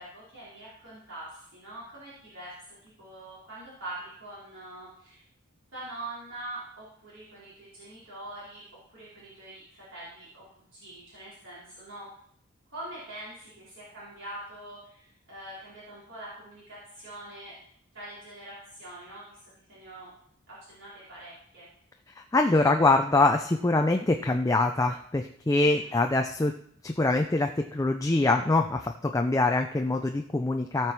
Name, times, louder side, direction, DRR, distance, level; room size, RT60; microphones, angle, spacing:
voice 1, 0.0-2.5 2.8-5.2 5.7-8.6 8.9-12.1 12.7-17.6 17.9-20.1 20.5-21.7 25.7-25.9, right 1 dB, 60° right, -10 dB, 4.7 m, -44 dB
voice 2, 22.2-26.5 26.8-30.9, left 2 dB, 15° left, 4 dB, 0.4 m, -24 dB
16.5 x 5.9 x 4.6 m, 0.66 s
head